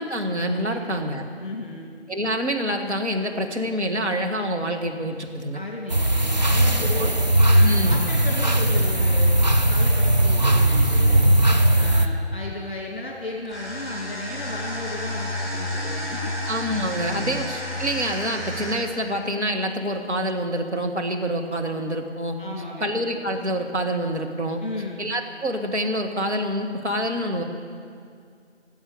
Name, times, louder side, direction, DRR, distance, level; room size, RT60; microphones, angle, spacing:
voice 1, 0.0-1.2 2.1-5.6 7.0-7.1 7.6-8.0 16.5-22.4 22.8-24.6 25.0-27.4, equal, 70° right, 3 dB, 1.9 m, -26 dB
voice 2, 0.7-1.0 1.4-1.9 5.5-7.2 7.5-11.2 11.7-16.4 17.2-17.5 22.4-22.9 24.6-25.0, left 2 dB, 45° left, -2 dB, 2.3 m, -35 dB
sound 1, 5.9-12.1, right 1 dB, 40° right, 0.7 m, -18 dB
sound 2, 13.4-19.0, left 1 dB, 15° left, 4.6 m, -31 dB
14.0 x 8.0 x 9.8 m, 2.2 s
figure-of-eight pair, 165°, 35 cm